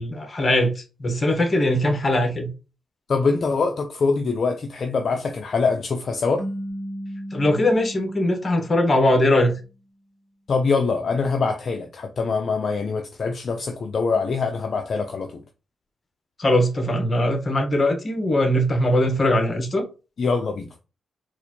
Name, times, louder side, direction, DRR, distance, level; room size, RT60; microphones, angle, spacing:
voice 1, 0.0-2.5 7.3-9.6 16.4-19.8, left 1 dB, 35° left, 1.2 m, -21 dB
voice 2, 3.1-6.4 10.5-15.4 20.2-20.7, left 4 dB, 55° left, 0.5 m, -24 dB
sound 1, 6.4-9.5, equal, ahead, 1.0 m, -35 dB
4.0 x 2.5 x 2.9 m
cardioid pair, 80°, 0 cm